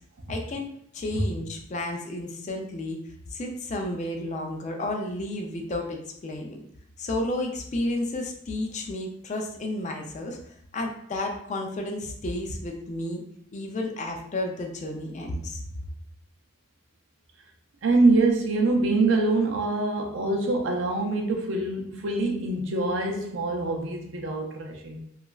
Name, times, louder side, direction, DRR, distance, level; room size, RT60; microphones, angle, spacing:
voice 1, 0.3-3.0 3.3-6.6 7.0-10.4 10.7-13.2 13.5-15.6, left 1 dB, 35° left, 2 dB, 0.4 m, -32 dB
voice 2, 17.8-25.0, right 2 dB, 65° right, 1 dB, 0.5 m, -24 dB
2.9 x 2.3 x 2.3 m, 0.69 s
head